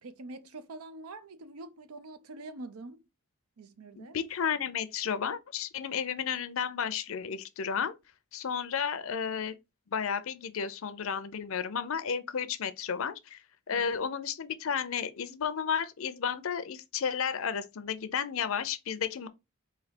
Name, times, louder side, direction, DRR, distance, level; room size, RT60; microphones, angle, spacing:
voice 1, 0.0-3.0 3.6-4.2 13.7-13.9, right 2 dB, 85° right, 0.6 m, -45 dB
voice 2, 3.9-7.9 8.3-9.6 9.9-13.4 13.7-19.3, left 7 dB, 65° left, 0.5 m, -32 dB
4.1 x 2.7 x 4.2 m
head